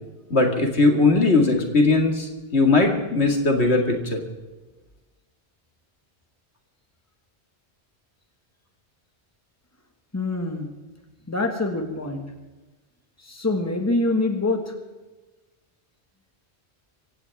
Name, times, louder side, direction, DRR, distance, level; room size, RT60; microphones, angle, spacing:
voice 1, 0.3-4.2, left 3 dB, 80° left, 2 dB, 2.5 m, -19 dB
voice 2, 10.1-10.8 11.3-12.3 13.2-14.7, left 2 dB, 15° left, 4 dB, 1.8 m, -25 dB
23.0 x 17.0 x 3.6 m, 1.2 s
omnidirectional pair, 1.1 m